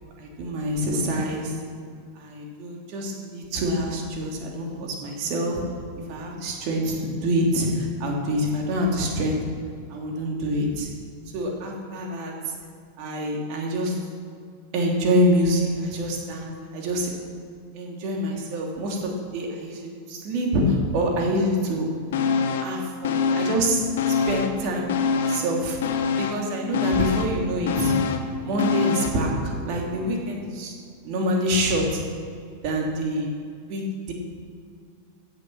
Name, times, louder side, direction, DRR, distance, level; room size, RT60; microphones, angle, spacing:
voice 1, 0.2-1.6 2.2-5.6 6.1-9.4 9.9-10.9 11.3-12.3 13.0-13.9 14.7-17.1 17.7-21.9 22.6-25.8 26.2-27.9 28.4-30.7 31.0-32.0 32.6-33.3 33.7-34.1, equal, 45° right, 0 dB, 2.9 m, -26 dB
sound 1, 22.1-22.8 23.0-24.6 24.9-29.3 29.6-29.7, left 6 dB, 55° left, 1.1 m, -25 dB
15.5 x 7.4 x 6.2 m, 2.2 s
figure-of-eight pair, 90°, 0 cm